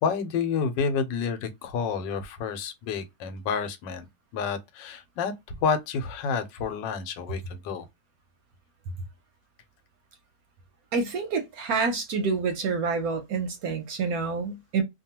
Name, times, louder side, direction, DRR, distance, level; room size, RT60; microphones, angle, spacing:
voice 1, 0.0-4.1 4.3-7.8, left 6 dB, 90° left, 1.3 m, -29 dB
voice 2, 10.9-14.8, right 4 dB, 70° right, 1.0 m, -27 dB
2.8 x 2.3 x 2.8 m
omnidirectional pair, 1.9 m